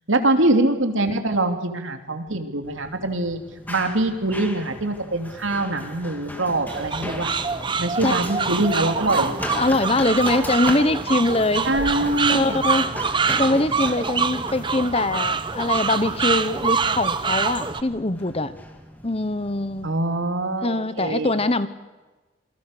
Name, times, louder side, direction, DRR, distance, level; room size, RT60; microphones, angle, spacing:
voice 1, 0.1-3.4 3.7-7.3 7.8-9.3 11.6-12.6 19.8-21.3, right 2 dB, 80° right, 5 dB, 2.8 m, -23 dB
Run, 2.6-19.9, equal, 10° left, 2.5 m, -38 dB
sound 1, 6.7-17.8, right 5 dB, 25° right, 0.9 m, -25 dB
voice 2, 9.2-11.7 12.3-12.9 13.2-18.5 19.0-19.9 20.6-21.7, left 2 dB, 30° left, 13 dB, 1.1 m, -23 dB
28.0 x 23.0 x 6.7 m, 1.2 s
head